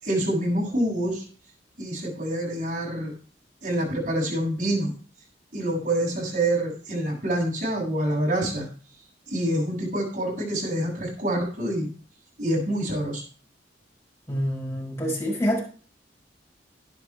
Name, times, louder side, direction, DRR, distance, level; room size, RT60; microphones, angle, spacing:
voice 1, 0.0-1.2 1.8-3.1 3.6-4.9 5.5-8.7 9.3-11.9 12.4-13.2, right 1 dB, 50° right, -2 dB, 7.8 m, -26 dB
voice 2, 14.3-15.6, equal, 15° left, -5 dB, 6.4 m, -26 dB
11.0 x 10.5 x 4.8 m, 0.41 s
head